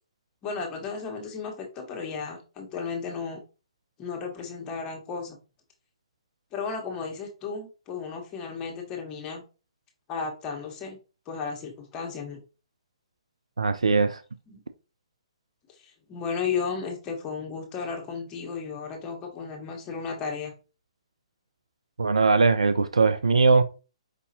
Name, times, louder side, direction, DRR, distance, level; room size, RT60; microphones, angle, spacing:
voice 1, 0.4-3.4 4.0-5.4 6.5-9.4 10.1-11.0 11.3-12.4 14.5-14.6 15.8-20.5, left 5 dB, 25° left, 1.2 m, -34 dB
voice 2, 13.6-14.2 22.0-23.6, right 4 dB, 85° right, 0.4 m, -20 dB
5.0 x 2.7 x 2.8 m
figure-of-eight pair, 130°, 3 cm